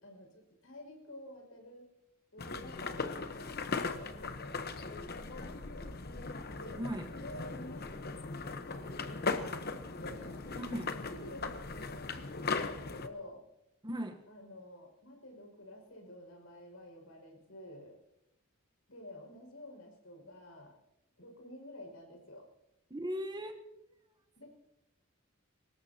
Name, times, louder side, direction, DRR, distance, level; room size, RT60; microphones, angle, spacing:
voice 1, 0.0-1.9 2.3-5.9 6.5-6.8 7.1-8.3 8.6-10.5 10.8-13.4 14.3-18.0 18.9-20.8 21.2-22.5 24.3-24.5, left 1 dB, 80° left, 2 dB, 5.6 m, -50 dB
sound 1, 2.4-13.1, left 4 dB, 50° left, 1.0 m, -38 dB
voice 2, 6.8-7.1 10.5-10.9 13.8-14.2 22.9-23.6, equal, 20° right, 6 dB, 1.0 m, -38 dB
24.0 x 20.0 x 2.8 m, 0.89 s
head